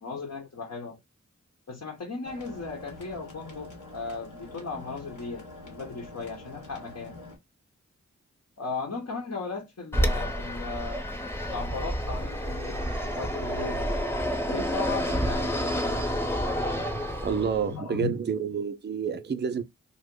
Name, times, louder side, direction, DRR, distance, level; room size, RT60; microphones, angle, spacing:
voice 1, 0.0-1.0 1.7-7.2 8.6-11.0 11.5-12.9 13.1-13.9 14.5-16.0 17.7-18.1, left 4 dB, 65° left, 1.0 m, -36 dB
sound 1, 2.2-7.4, left 2 dB, 85° left, 1.2 m, -45 dB
Fixed-wing aircraft airplane, 9.9-17.7, equal, 10° left, 0.8 m, -29 dB
voice 2, 17.2-19.6, right 6 dB, 35° right, 0.4 m, -29 dB
2.9 x 2.1 x 3.6 m
cardioid pair, 40°, 30 cm